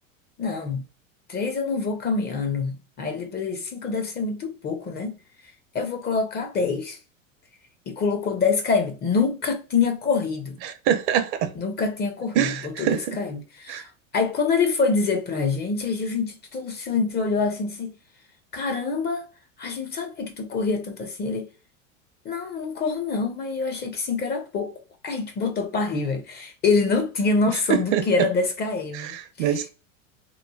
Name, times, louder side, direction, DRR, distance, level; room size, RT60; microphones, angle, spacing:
voice 1, 0.4-0.8 1.3-5.2 5.7-7.0 7.9-10.6 11.6-17.9 18.5-19.3 19.6-21.5 22.2-29.5, left 4 dB, 25° left, 0.5 m, -26 dB
voice 2, 10.6-11.5 12.4-13.2 13.7-13.8 27.7-28.0 28.9-29.7, right 9 dB, 55° right, 0.7 m, -24 dB
3.0 x 2.1 x 2.2 m
hypercardioid pair, 100°, 40 cm